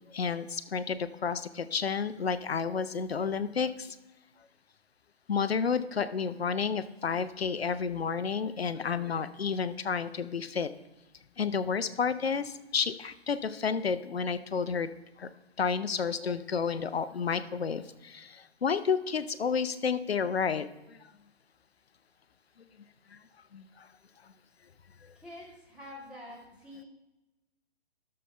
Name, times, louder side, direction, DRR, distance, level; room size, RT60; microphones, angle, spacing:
voice 1, 0.1-3.7 5.3-10.7 11.4-14.9 15.2-15.3 15.6-18.3 18.6-20.6 23.5-23.6, left 6 dB, 70° left, 13 dB, 0.7 m, -30 dB
voice 2, 25.2-26.8, left 1 dB, 5° right, -5 dB, 1.9 m, -47 dB
12.0 x 6.7 x 3.3 m, 1.0 s
figure-of-eight pair, 125°, 32 cm